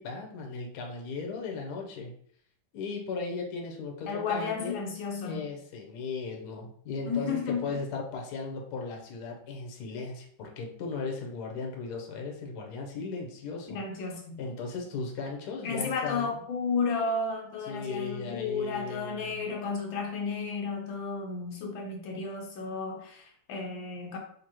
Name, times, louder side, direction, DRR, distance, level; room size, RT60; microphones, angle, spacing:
voice 1, 0.0-2.1 2.7-4.8 5.2-13.8 14.4-16.3 17.7-19.5, left 4 dB, 65° left, 1 dB, 1.3 m, -37 dB
voice 2, 4.1-5.5 7.0-7.8 13.7-14.4 15.6-24.2, left 4 dB, 85° left, 1 dB, 1.6 m, -33 dB
5.4 x 2.9 x 3.0 m, 0.62 s
omnidirectional pair, 2.0 m